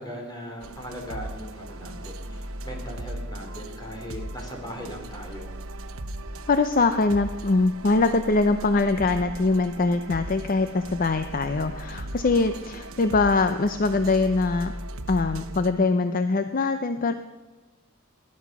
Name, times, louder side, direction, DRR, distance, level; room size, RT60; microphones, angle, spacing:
voice 1, 0.0-5.6, equal, 20° left, 1 dB, 3.5 m, -39 dB
sound 1, 0.6-15.7, right 1 dB, 85° right, 0.9 m, -38 dB
voice 2, 6.5-14.7 15.1-17.1, left 3 dB, 45° left, 9 dB, 0.6 m, -23 dB
18.0 x 11.0 x 6.0 m, 1.2 s
head